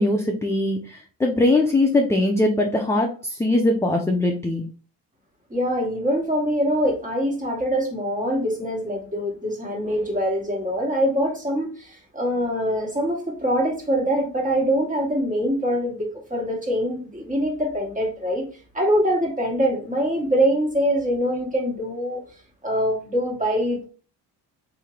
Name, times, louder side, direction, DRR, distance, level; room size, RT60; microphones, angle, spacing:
voice 1, 0.0-4.7, left 2 dB, 5° left, 2 dB, 0.5 m, -21 dB
voice 2, 5.5-18.5 18.7-22.2 22.6-23.8, equal, 20° right, 0 dB, 1.6 m, -24 dB
3.7 x 2.8 x 3.2 m, 0.37 s
supercardioid pair, 85°, 42 cm